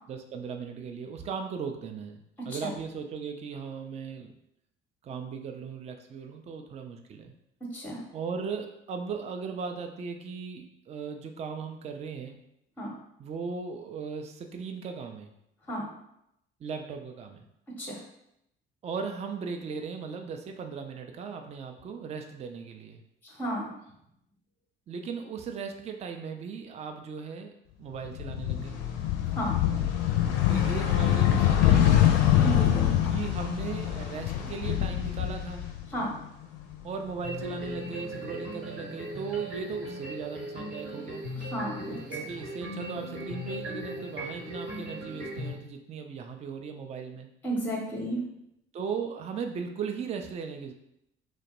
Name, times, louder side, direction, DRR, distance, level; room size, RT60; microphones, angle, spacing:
voice 1, 0.1-4.3 5.0-7.3 8.1-12.4 13.2-15.3 16.6-17.4 18.8-23.0 24.9-28.8 30.5-32.2 33.1-35.7 36.8-41.3 42.1-47.3 48.7-50.7, right 5 dB, 25° right, 5 dB, 0.3 m, -37 dB
voice 2, 7.6-8.0 12.8-12.9 15.7-15.9 17.8-18.0 23.2-23.7 29.3-29.6 32.4-32.9 35.9-36.1 41.4-42.2 47.4-48.2, right 1 dB, 5° left, -2 dB, 0.7 m, -33 dB
sound 1, 28.0-36.2 36.5-37.7, left 11 dB, 60° left, 0.5 m, -25 dB
sound 2, 37.2-45.5, equal, 75° right, 1.1 m, -38 dB
3.0 x 2.1 x 2.9 m, 0.80 s
figure-of-eight pair, 50°, 30 cm